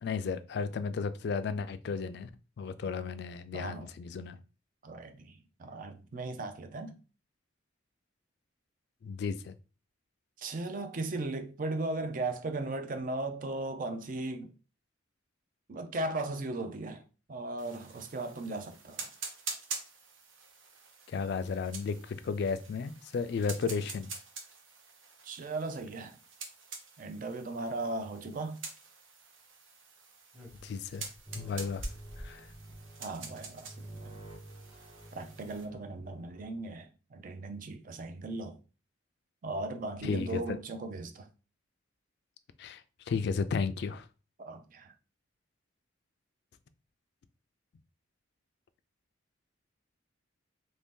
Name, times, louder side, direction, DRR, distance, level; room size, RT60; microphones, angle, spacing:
voice 1, 0.0-2.3 2.6-4.4 9.0-9.5 21.1-24.1 30.6-31.0 31.3-31.8 32.2-32.5 40.0-40.4 42.6-44.1, left 5 dB, 55° left, 0.3 m, -34 dB
voice 2, 3.5-3.9 4.8-7.0 10.4-14.5 15.7-17.0 17.3-19.1 25.2-26.2 27.0-28.7 33.0-34.2 35.1-38.6 39.4-41.3 44.4-44.9, right 2 dB, 45° right, 0.4 m, -37 dB
sound 1, 17.6-35.7, right 4 dB, 80° right, 0.7 m, -47 dB
sound 2, 30.3-32.9 34.1-34.2 34.3-34.4 34.6-35.0 35.4-35.7, equal, 5° right, 0.9 m, -47 dB
sound 3, 31.3-36.5, right 1 dB, 25° right, 1.1 m, -49 dB
2.9 x 2.7 x 3.6 m
head